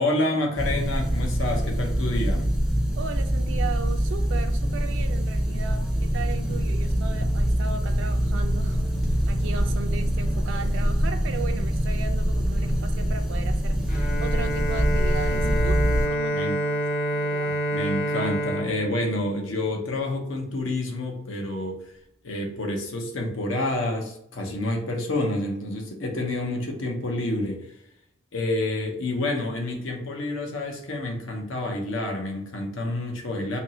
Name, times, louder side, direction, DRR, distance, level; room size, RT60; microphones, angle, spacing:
voice 1, 0.0-2.5 16.3-16.6 17.7-21.8 22.2-27.7 28.3-33.6, left 1 dB, 80° left, 0.9 m, -28 dB
sound 1, 0.6-16.1, equal, ahead, 0.4 m, -24 dB
voice 2, 3.0-17.6, right 5 dB, 75° right, 0.3 m, -37 dB
Bowed string instrument, 13.9-19.9, equal, 35° left, 0.9 m, -28 dB
2.9 x 2.6 x 4.1 m
head